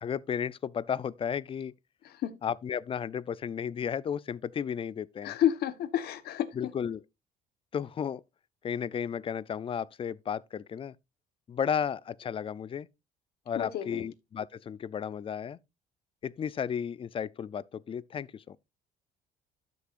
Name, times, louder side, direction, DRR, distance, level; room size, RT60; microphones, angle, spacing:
voice 1, 0.0-1.7 2.4-5.4 6.5-7.0 7.7-8.2 8.6-10.9 11.5-12.9 13.5-15.6 16.2-18.6, left 8 dB, 30° left, 0.5 m, -33 dB
voice 2, 5.2-6.5 13.5-14.0, left 11 dB, 70° left, 1.2 m, -29 dB
12.5 x 6.8 x 2.5 m
cardioid pair, 110°, 17 cm